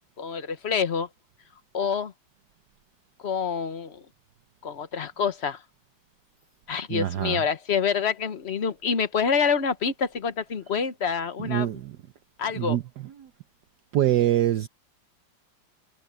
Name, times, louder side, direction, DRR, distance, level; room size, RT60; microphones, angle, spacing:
voice 1, 0.2-1.1 1.7-2.1 3.2-4.0 4.6-5.6 6.7-11.8 12.4-12.8, left 6 dB, 40° left, 1.1 m, -27 dB
voice 2, 6.9-7.4 11.4-12.0 12.5-13.3 13.9-14.7, right 12 dB, 65° right, 1.2 m, -25 dB
omnidirectional pair, 2.1 m